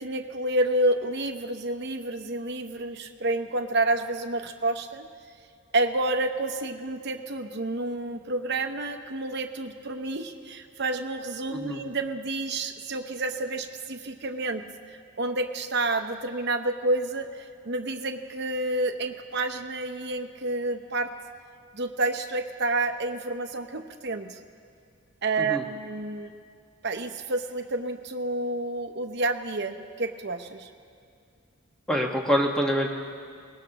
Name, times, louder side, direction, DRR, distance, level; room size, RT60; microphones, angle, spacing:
voice 1, 0.0-5.1 5.7-21.1 21.7-24.4 25.2-26.3 26.8-30.7, right 2 dB, 50° right, 5 dB, 0.8 m, -29 dB
voice 2, 11.5-11.8 25.5-25.6 31.9-32.9, equal, 5° left, -1 dB, 1.3 m, -25 dB
23.5 x 19.5 x 3.0 m, 2.4 s
head